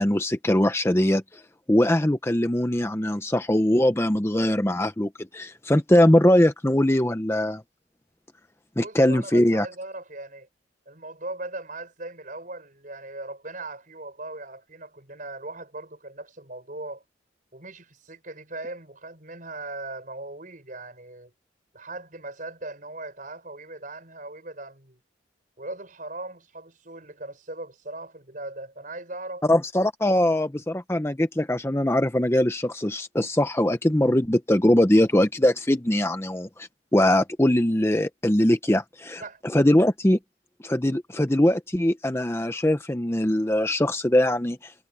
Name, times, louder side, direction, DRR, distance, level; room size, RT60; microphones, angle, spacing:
voice 1, 0.0-1.4 1.7-7.6 8.8-9.7 29.5-39.2 39.5-40.2 40.6-44.7, left 1 dB, 15° left, 0.7 m, -21 dB
voice 2, 8.8-10.5 10.8-17.0 17.5-21.3 21.7-25.0 25.6-29.4 39.2-39.4, right 2 dB, 45° right, 6.5 m, -39 dB
head